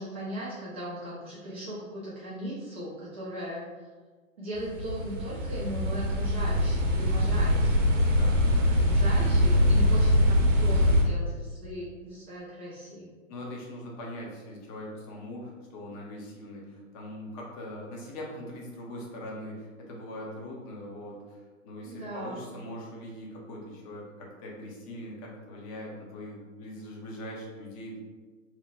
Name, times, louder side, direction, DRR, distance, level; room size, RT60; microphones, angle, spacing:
voice 1, 0.0-3.7 4.4-7.7 8.9-13.1 21.8-22.4, right 1 dB, 10° right, -11 dB, 0.3 m, -38 dB
sound 1, 4.6-11.0, left 1 dB, 65° right, 0.7 m, -23 dB
voice 2, 8.2-8.7 13.3-28.0, left 1 dB, 25° left, -2 dB, 0.6 m, -41 dB
2.9 x 2.1 x 3.9 m, 1.4 s
figure-of-eight pair, 120°, 41 cm